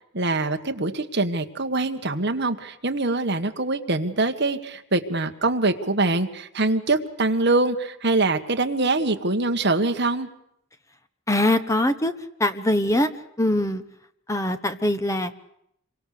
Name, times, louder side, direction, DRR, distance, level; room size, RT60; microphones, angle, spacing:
voice 1, 0.1-10.3, right 2 dB, 50° right, 6 dB, 1.7 m, -24 dB
voice 2, 11.3-12.1 12.4-13.1 13.4-13.8 14.3-15.3, left 1 dB, 15° left, 9 dB, 1.1 m, -22 dB
27.5 x 23.5 x 6.8 m, 0.75 s
head